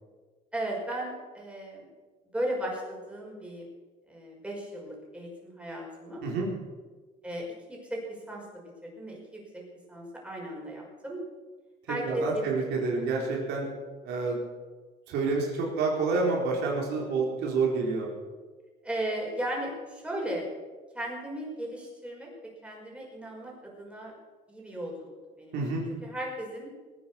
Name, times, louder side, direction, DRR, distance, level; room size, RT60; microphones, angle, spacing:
voice 1, 0.5-1.8 2.3-3.7 4.1-6.2 7.2-9.6 9.9-11.2 11.9-12.4 18.8-20.5 20.9-22.3 22.6-24.1 24.5-24.9 25.4-25.6 25.9-26.7, right 1 dB, 5° right, -2 dB, 5.6 m, -36 dB
voice 2, 12.0-13.7 14.0-14.4 15.1-18.1 25.5-25.8, right 4 dB, 85° right, -2 dB, 4.2 m, -28 dB
19.0 x 9.7 x 7.0 m, 1.4 s
cardioid pair, 110°, 17 cm